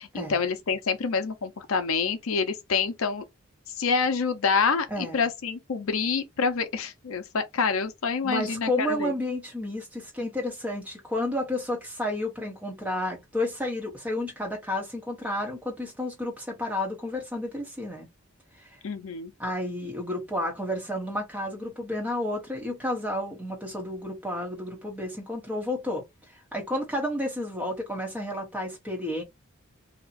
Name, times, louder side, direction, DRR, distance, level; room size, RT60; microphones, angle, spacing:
voice 1, 0.0-3.2 3.8-9.1 18.8-19.3, left 5 dB, 70° left, 0.6 m, -27 dB
voice 2, 4.9-5.2 8.2-18.1 18.6-18.8 19.4-26.0 26.3-29.2, left 1 dB, 5° right, 1.1 m, -31 dB
2.8 x 2.4 x 4.0 m
head